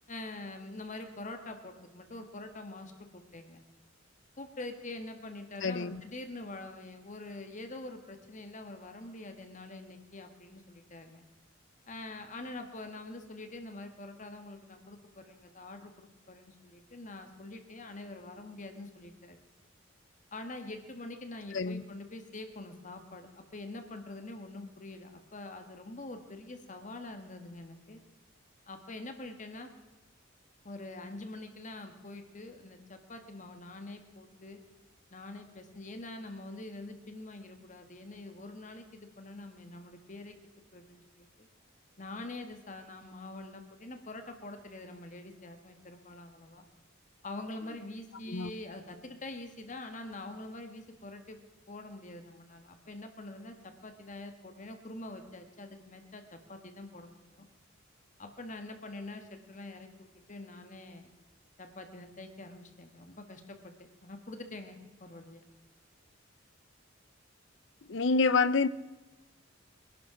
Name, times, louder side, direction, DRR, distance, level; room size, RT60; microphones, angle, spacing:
voice 1, 0.1-3.6 4.4-11.3 11.9-19.4 20.3-28.0 28.7-29.7 30.6-34.6 35.1-40.4 40.7-41.5 42.0-46.7 47.2-51.4 51.7-57.5 58.2-61.1 61.6-65.4, left 2 dB, 40° left, 7 dB, 1.5 m, -45 dB
voice 2, 5.6-6.0 21.5-21.8 48.3-48.5 67.9-68.7, left 4 dB, 65° left, 16 dB, 0.6 m, -27 dB
21.5 x 11.0 x 5.8 m, 1.2 s
head